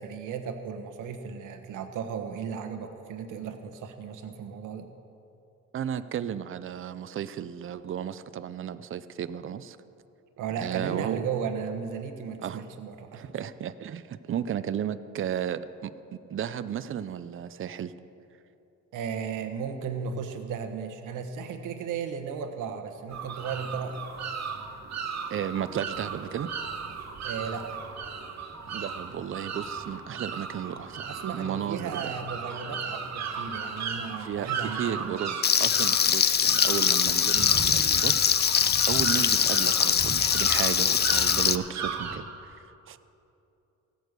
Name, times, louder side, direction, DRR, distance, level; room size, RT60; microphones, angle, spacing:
voice 1, 0.0-4.9 10.4-13.3 18.9-24.1 27.2-27.8 31.1-35.2, right 6 dB, 85° right, 7 dB, 1.2 m, -35 dB
voice 2, 5.7-9.8 10.6-11.3 12.4-12.6 13.1-17.9 25.3-26.5 28.7-31.1 31.3-32.1 34.2-38.3 38.9-43.0, right 9 dB, 45° right, 13 dB, 0.6 m, -34 dB
sound 1, 23.1-42.2, right 5 dB, 60° right, 1.5 m, -36 dB
Frying (food), 35.4-41.5, left 8 dB, 35° left, 0.5 m, -23 dB
16.0 x 9.1 x 6.7 m, 2.8 s
cardioid pair, 90°, 30 cm